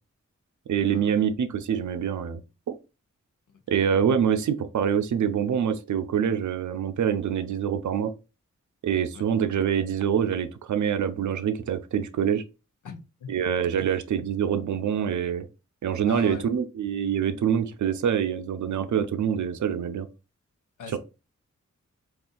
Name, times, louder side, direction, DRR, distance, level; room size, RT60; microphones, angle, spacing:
voice 1, 0.7-2.4 2.7-2.8 3.7-8.1 8.8-12.4 13.3-15.5 15.8-20.1, right 8 dB, 75° right, 0.5 m, -25 dB
voice 2, 3.5-3.9 9.1-9.2 12.8-13.3 16.1-16.4 20.8-21.0, left 5 dB, 80° left, 0.7 m, -40 dB
2.5 x 2.4 x 3.7 m
cardioid pair, 45°, 30 cm